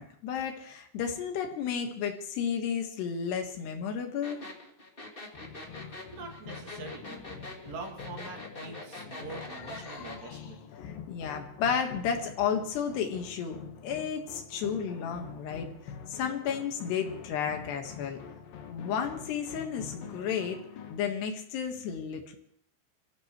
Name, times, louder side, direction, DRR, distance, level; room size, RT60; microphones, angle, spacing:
voice 1, 0.0-4.4 5.7-5.9 9.6-10.5 10.8-18.2 18.7-20.6 20.9-22.4, left 7 dB, 80° left, 4 dB, 3.8 m, -33 dB
sound 1, 4.2-10.2, left 2 dB, 20° left, 1.6 m, -43 dB
sound 2, 5.3-21.0, left 7 dB, 65° left, 2.9 m, -46 dB
voice 2, 6.1-7.2 7.6-10.6, right 4 dB, 80° right, 0 dB, 4.9 m, -44 dB
26.0 x 15.5 x 3.2 m, 0.66 s
omnidirectional pair, 4.8 m